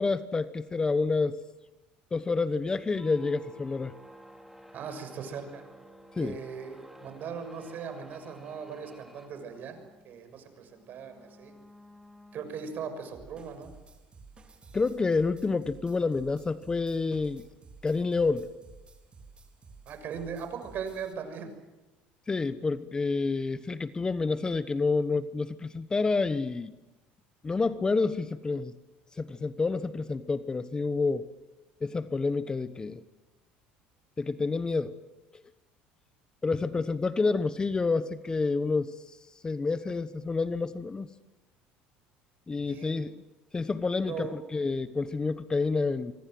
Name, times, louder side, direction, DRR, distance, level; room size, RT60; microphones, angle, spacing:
voice 1, 0.0-1.4 2.1-3.9 6.1-6.4 14.7-17.5 17.8-18.5 22.3-26.7 27.4-28.7 29.1-31.3 31.8-33.0 34.2-35.0 36.4-39.2 39.4-41.1 42.5-43.1 43.5-46.1, left 4 dB, 20° left, 13 dB, 1.1 m, -28 dB
sound 1, 2.9-13.2, equal, 5° right, 3.5 m, -53 dB
voice 2, 4.7-5.6 6.2-9.8 10.0-11.5 12.3-13.7 19.9-21.5 42.6-43.0 44.1-44.3, right 6 dB, 50° right, 9 dB, 6.5 m, -39 dB
sound 2, 13.1-21.1, right 4 dB, 25° right, 4.3 m, -53 dB
25.0 x 24.5 x 7.9 m, 1.0 s
supercardioid pair, 105°, 4 cm